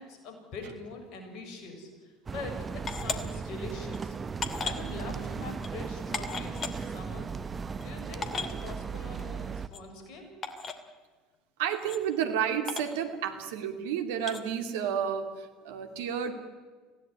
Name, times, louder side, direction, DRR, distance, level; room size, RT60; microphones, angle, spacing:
voice 1, 0.0-4.2 4.6-7.3 7.8-10.3, left 3 dB, 50° left, 4 dB, 7.1 m, -43 dB
sound 1, 2.3-9.7, right 5 dB, 25° right, 1.1 m, -37 dB
sound 2, 2.9-3.2 3.9-4.0 4.4-4.8 5.6-5.7 6.1-6.7 7.5-7.6 7.8-7.9 8.2-8.5 9.7-9.8 10.4-10.8 11.8-12.0 12.7-12.9 14.2-14.4, left 4 dB, 35° left, 2.6 m, -35 dB
voice 2, 11.6-16.3, right 8 dB, 65° right, 6 dB, 2.7 m, -31 dB
25.5 x 17.0 x 9.7 m, 1.4 s
figure-of-eight pair, 70°, 0 cm